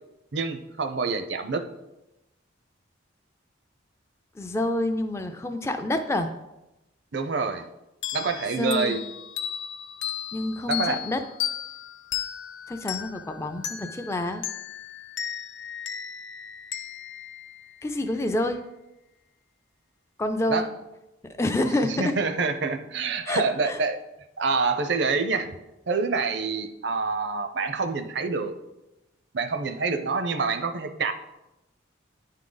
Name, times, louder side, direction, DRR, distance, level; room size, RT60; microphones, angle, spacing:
voice 1, 0.3-1.7 7.1-7.7 8.1-9.0 10.7-11.0 20.5-20.7 21.9-24.0 24.4-25.5 25.9-28.5 29.3-31.1, right 4 dB, 60° right, 8 dB, 0.6 m, -26 dB
voice 2, 4.4-6.3 8.6-9.0 10.3-11.2 12.7-14.4 17.8-18.6 20.2-20.7 21.4-22.1 23.3-23.8, left 1 dB, 15° left, 6 dB, 0.3 m, -27 dB
sound 1, 8.0-18.3, left 10 dB, 70° left, 0.5 m, -35 dB
9.9 x 3.7 x 3.9 m, 0.96 s
head